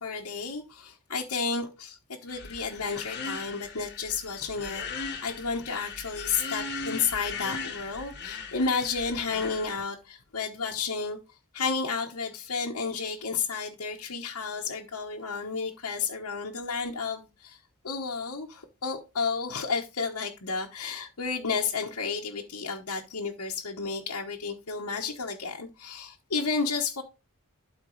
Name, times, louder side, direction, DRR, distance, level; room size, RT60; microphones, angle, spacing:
voice 1, 0.0-11.2 11.5-17.6 17.8-27.0, left 5 dB, 75° left, 1.2 m, -32 dB
sound 1, 2.3-9.7, left 4 dB, 50° left, 1.6 m, -38 dB
12.5 x 4.4 x 3.2 m
head